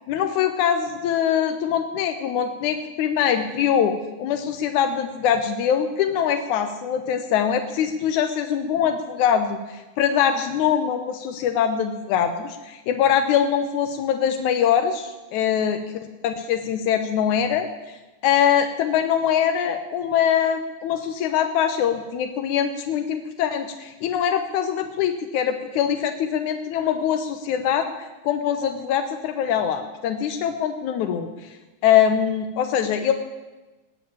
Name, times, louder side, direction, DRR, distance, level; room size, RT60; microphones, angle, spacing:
voice 1, 0.1-15.8 16.2-17.7 18.2-31.3 31.8-33.1, left 8 dB, 75° left, 6 dB, 1.8 m, -23 dB
19.5 x 7.3 x 8.7 m, 1.1 s
omnidirectional pair, 4.6 m